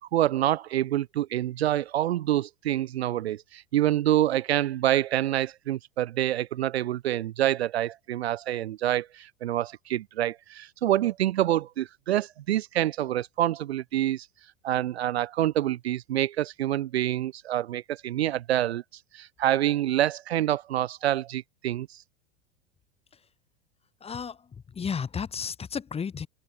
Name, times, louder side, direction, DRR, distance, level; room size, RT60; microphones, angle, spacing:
voice 1, 0.0-14.3 14.6-18.8 19.1-22.0, right 13 dB, 60° right, 0.6 m, -27 dB
voice 2, 24.0-24.4 24.7-26.3, left 6 dB, 15° left, 2.0 m, -32 dB
figure-of-eight pair, 85°, 35 cm